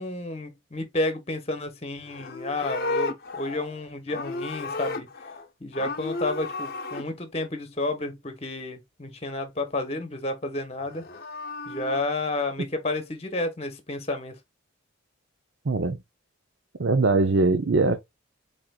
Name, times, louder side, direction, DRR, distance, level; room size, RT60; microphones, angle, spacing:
voice 1, 0.0-5.1 5.6-11.0 11.7-14.4, left 2 dB, 30° left, 1.0 m, -31 dB
Livestock farm animals working animals, 2.0-5.5 5.7-7.0 10.8-12.0, left 3 dB, 45° left, 0.7 m, -33 dB
voice 2, 15.6-16.0 16.8-18.0, right 3 dB, 60° right, 0.6 m, -21 dB
5.0 x 4.2 x 2.3 m
head